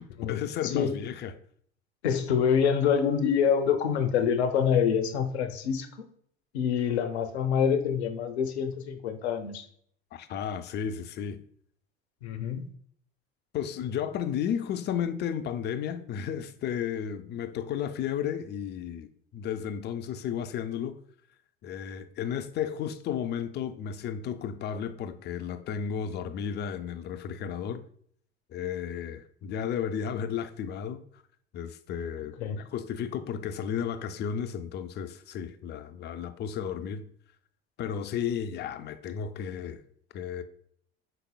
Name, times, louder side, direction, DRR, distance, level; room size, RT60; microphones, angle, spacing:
voice 1, 0.0-1.4 10.1-11.4 13.5-21.0 21.6-27.8 28.5-31.0 31.5-37.1 37.8-39.8 40.1-40.4, left 8 dB, 35° left, 0.4 m, -33 dB
voice 2, 2.0-6.1 6.5-9.6 12.2-12.7 32.4-32.6, left 7 dB, 80° left, 0.6 m, -26 dB
5.1 x 4.0 x 2.2 m
hypercardioid pair, 70°, 32 cm